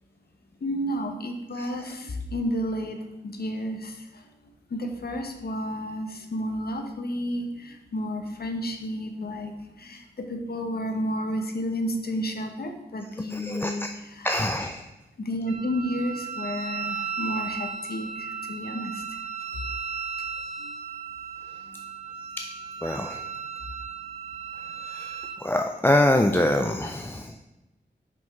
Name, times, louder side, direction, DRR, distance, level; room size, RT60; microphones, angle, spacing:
voice 1, 0.6-3.0 3.2-4.0 4.7-14.4 15.2-19.0 20.6-20.7 26.8-26.9, equal, 55° left, 5 dB, 0.9 m, -31 dB
voice 2, 13.3-13.7 14.2-14.8 22.8-23.2 24.9-25.2 25.4-27.3, left 1 dB, 10° left, 5 dB, 0.3 m, -24 dB
Wind instrument woodwind instrument, 15.5-25.4, right 6 dB, 35° right, 0.6 m, -35 dB
5.5 x 5.1 x 4.6 m, 1.0 s
wide cardioid pair, 100°, 19 cm